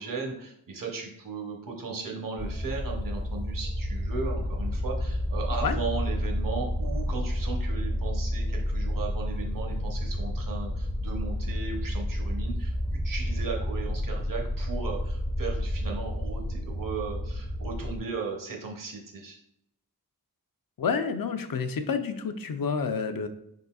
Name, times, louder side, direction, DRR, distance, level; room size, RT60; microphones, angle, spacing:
voice 1, 0.0-19.4, right 4 dB, 60° right, 0 dB, 0.9 m, -36 dB
sound 1, 2.4-18.0, equal, 10° left, 0.5 m, -30 dB
voice 2, 20.8-23.3, left 5 dB, 65° left, 7 dB, 0.6 m, -29 dB
5.3 x 3.9 x 2.3 m, 0.76 s
wide cardioid pair, 60°, 37 cm